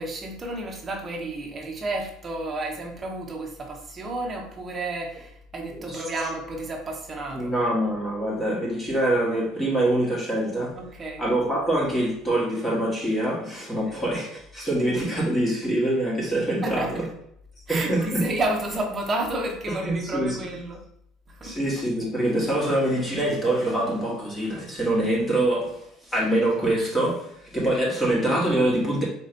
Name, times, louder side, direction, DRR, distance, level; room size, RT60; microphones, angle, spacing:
voice 1, 0.0-7.5 10.7-11.2 16.6-17.1 17.7-20.8 21.3-21.6, right 2 dB, 20° right, 0 dB, 1.0 m, -31 dB
voice 2, 7.3-10.8 11.2-16.9 17.7-18.2 19.8-20.4 21.4-29.0, right 1 dB, 15° left, -4 dB, 1.5 m, -25 dB
4.4 x 3.0 x 3.9 m, 0.74 s
cardioid pair, 165°, 0 cm